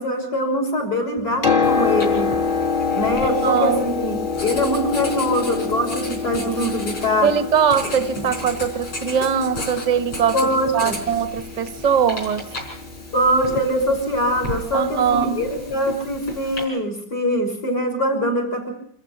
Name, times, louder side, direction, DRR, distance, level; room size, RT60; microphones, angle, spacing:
voice 1, 0.0-2.3 2.9-7.3 10.3-11.0 13.1-18.7, equal, 50° left, 6.3 m, -23 dB
Piano, 1.2-14.9 16.0-16.1, left 5 dB, 25° left, 1.7 m, -26 dB
Writing, 1.6-16.6, left 1 dB, 75° left, 5.4 m, -35 dB
voice 2, 3.2-3.8 7.2-10.4 10.7-12.5 14.7-15.4, right 7 dB, 30° right, 0.9 m, -21 dB
26.5 x 14.5 x 6.7 m
omnidirectional pair, 2.2 m